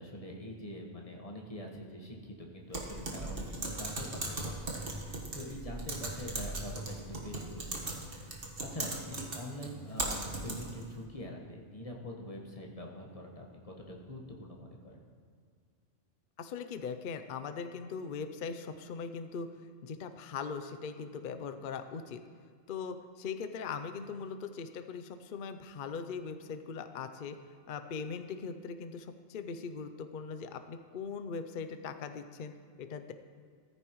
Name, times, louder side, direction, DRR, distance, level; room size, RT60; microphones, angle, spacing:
voice 1, 0.0-15.0, equal, 25° left, 0 dB, 1.4 m, -44 dB
Typing, 2.7-10.9, right 2 dB, 45° right, 1.6 m, -38 dB
voice 2, 16.4-19.5 19.8-22.2 22.7-27.4 27.7-32.5 32.8-33.1, left 5 dB, 55° left, 9 dB, 0.6 m, -40 dB
14.5 x 14.0 x 3.1 m, 2.1 s
omnidirectional pair, 1.4 m